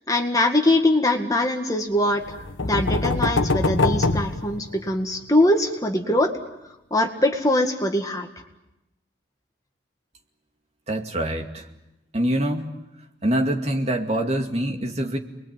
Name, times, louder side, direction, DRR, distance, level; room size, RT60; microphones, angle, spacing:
voice 1, 0.1-6.3 6.9-8.3, left 1 dB, 20° left, 4 dB, 1.9 m, -22 dB
sound 1, 2.2-5.2, left 2 dB, 85° left, 1.3 m, -23 dB
voice 2, 10.9-11.7 12.1-12.8 13.2-15.2, right 1 dB, 35° right, 3 dB, 2.4 m, -25 dB
29.5 x 22.0 x 9.1 m, 0.95 s
head